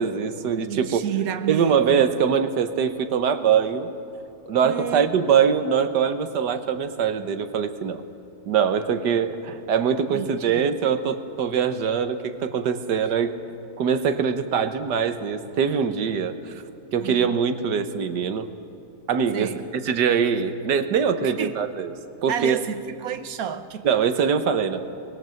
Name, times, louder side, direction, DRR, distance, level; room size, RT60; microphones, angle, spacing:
voice 1, 0.0-1.0 1.5-3.9 4.5-8.0 8.5-13.3 13.8-16.6 16.9-18.5 19.1-19.5 19.8-21.9 22.2-22.6 23.8-24.8, right 7 dB, 85° right, 1.7 m, -23 dB
voice 2, 0.6-2.1 4.6-5.1 10.1-10.7 17.0-17.3 19.3-19.7 21.2-21.6 22.3-23.9, right 9 dB, 65° right, 1.4 m, -31 dB
24.5 x 20.5 x 7.7 m
omnidirectional pair, 1.7 m